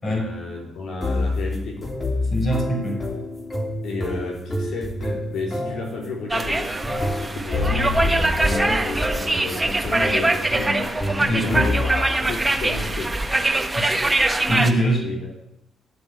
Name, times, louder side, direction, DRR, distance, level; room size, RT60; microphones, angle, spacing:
voice 1, 0.0-1.9 3.8-6.7 7.1-13.2 15.0-15.3, left 3 dB, 70° left, 1 dB, 3.5 m, -32 dB
sound 1, 1.0-12.2, left 2 dB, 20° left, 2.9 m, -28 dB
voice 2, 2.3-3.0 11.2-11.6 13.8-14.0 14.5-15.1, equal, 40° left, 1 dB, 6.6 m, -23 dB
sound 2, 6.3-14.7, right 2 dB, 10° right, 1.5 m, -23 dB
12.0 x 8.5 x 9.2 m, 0.80 s
cardioid pair, 90°, 0 cm